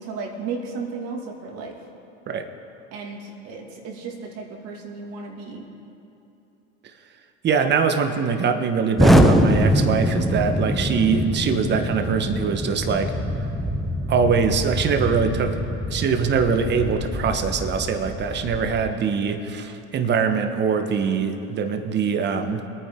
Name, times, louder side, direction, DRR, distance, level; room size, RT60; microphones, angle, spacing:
voice 1, 0.0-1.8 2.9-5.7, right 4 dB, 55° right, 1 dB, 2.4 m, -34 dB
voice 2, 7.4-13.1 14.1-15.6 15.9-22.7, right 6 dB, 35° right, 7 dB, 1.4 m, -23 dB
Explosion, 9.0-18.9, equal, ahead, 0.8 m, -23 dB
24.0 x 9.4 x 3.9 m, 2.9 s
supercardioid pair, 105°, 30 cm